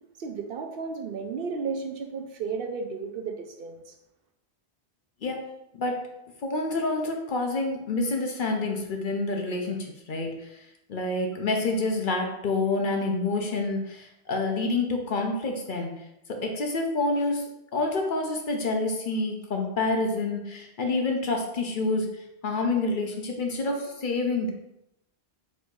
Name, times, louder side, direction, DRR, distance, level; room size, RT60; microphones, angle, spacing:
voice 1, 0.2-3.9, right 5 dB, 65° right, 4 dB, 0.7 m, -33 dB
voice 2, 6.4-15.9 16.4-17.4 17.7-22.1 22.4-24.5, left 2 dB, 55° left, 2 dB, 0.8 m, -28 dB
4.3 x 2.7 x 4.6 m, 0.85 s
omnidirectional pair, 1.1 m